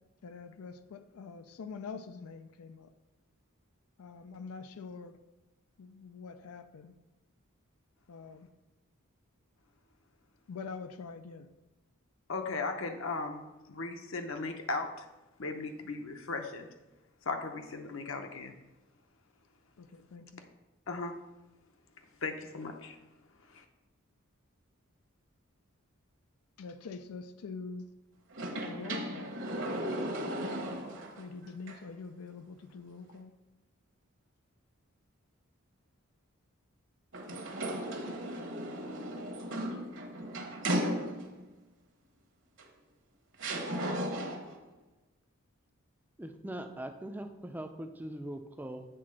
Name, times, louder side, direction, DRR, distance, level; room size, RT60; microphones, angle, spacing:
voice 1, 0.2-2.9 4.0-5.2 5.8-6.9 8.1-8.5 10.5-11.5 19.8-20.4 26.6-27.9 28.6-29.4 31.2-33.3, left 4 dB, 90° left, 10 dB, 0.4 m, -45 dB
voice 2, 12.3-15.1 15.4-16.7 17.3-18.5 20.9-21.2 22.2-23.0 23.5-23.6, left 3 dB, 65° left, 5 dB, 0.8 m, -37 dB
sound 1, 28.3-31.2 31.7-31.8 37.1-41.5 42.6-42.7 43.4-44.6, right 1 dB, 55° right, 1.1 m, -36 dB
voice 3, 46.2-48.9, right 1 dB, 10° right, 6 dB, 0.4 m, -41 dB
7.8 x 3.7 x 6.3 m, 1.0 s
head